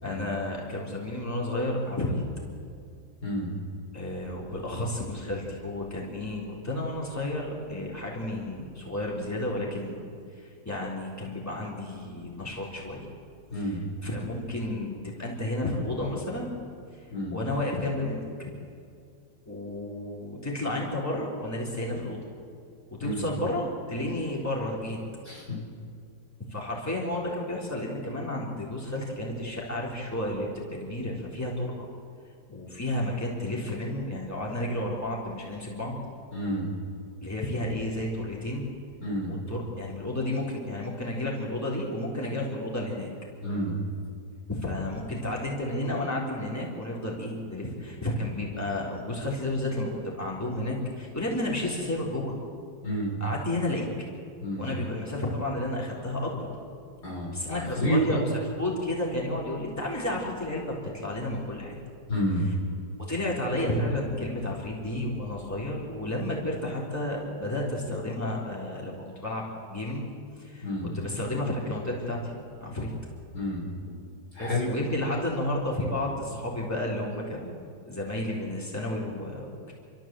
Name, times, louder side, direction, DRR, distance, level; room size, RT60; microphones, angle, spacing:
voice 1, 0.0-2.2 3.9-10.1 10.4-13.1 13.5-16.5 17.3-18.2 19.5-22.2 23.0-25.0 26.5-31.9 32.5-36.0 37.2-38.7 39.3-43.1 44.5-52.3 53.2-53.9 54.6-56.5 57.3-58.3 58.6-61.7 62.4-62.5 63.0-70.1 70.4-72.3 72.6-72.9 74.4-79.7, left 1 dB, 10° left, -4 dB, 3.7 m, -32 dB
voice 2, 3.2-3.5 13.5-13.8 17.1-17.4 23.0-23.2 25.2-25.6 36.3-36.7 39.0-39.4 43.4-43.7 52.8-53.2 54.4-54.7 57.0-58.2 62.1-62.5 70.6-70.9 73.3-74.0 74.3-74.7, equal, 75° left, -2 dB, 5.2 m, -29 dB
29.5 x 13.5 x 7.7 m, 2.3 s
omnidirectional pair, 1.7 m